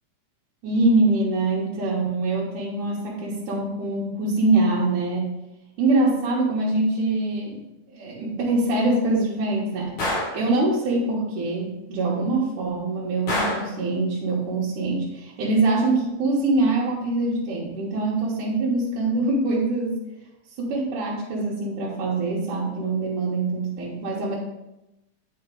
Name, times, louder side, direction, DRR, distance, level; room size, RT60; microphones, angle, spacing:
voice 1, 0.6-5.4 5.8-7.6 7.9-10.0 10.3-20.0 20.6-24.4, right 2 dB, 80° right, -7 dB, 2.7 m, -24 dB
Gunshot gunfire, 10.0-10.4 13.3-13.7, left 1 dB, 45° left, 3.2 m, -26 dB
8.8 x 5.4 x 3.8 m, 0.94 s
omnidirectional pair, 3.6 m